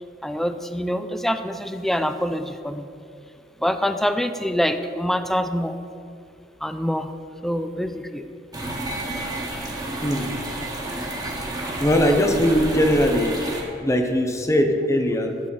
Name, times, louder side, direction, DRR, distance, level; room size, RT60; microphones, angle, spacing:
voice 1, 0.2-2.9 3.6-5.8 6.6-7.1 7.4-8.3, equal, ahead, 9 dB, 0.4 m, -25 dB
sound 1, 8.5-13.6, right 1 dB, 20° right, 1.6 m, -30 dB
voice 2, 11.8-13.4 13.8-15.3, equal, 15° left, 4 dB, 0.8 m, -20 dB
12.0 x 4.1 x 7.6 m, 2.4 s
head